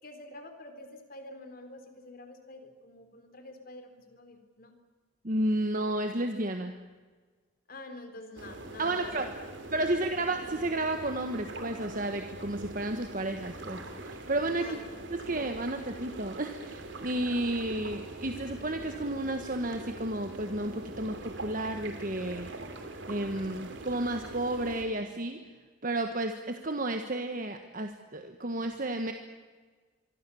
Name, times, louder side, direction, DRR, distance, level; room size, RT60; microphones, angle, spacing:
voice 1, 0.0-4.8 7.7-9.3 14.6-14.8, left 2 dB, 45° left, 6 dB, 3.7 m, -47 dB
voice 2, 5.2-6.7 8.8-9.3 9.7-14.8 15.1-22.5 23.1-25.5 25.8-29.1, right 1 dB, 45° right, 6 dB, 1.4 m, -32 dB
sound 1, 8.4-24.8, right 2 dB, 65° right, 3.2 m, -43 dB
25.5 x 24.0 x 7.1 m, 1.4 s
head